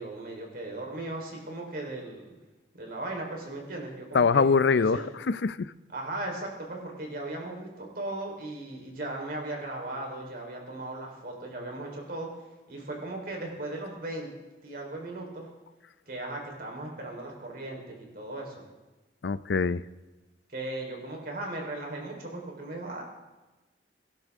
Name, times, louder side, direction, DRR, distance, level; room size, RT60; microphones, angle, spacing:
voice 1, 0.0-2.3 2.7-4.4 4.7-5.1 5.9-12.3 12.7-14.3 14.6-15.5 16.1-18.7 20.5-23.0, right 2 dB, 55° right, 1 dB, 3.9 m, -37 dB
voice 2, 4.1-5.7 19.2-19.8, left 5 dB, 80° left, 15 dB, 0.5 m, -24 dB
24.0 x 12.0 x 3.6 m, 1.1 s
head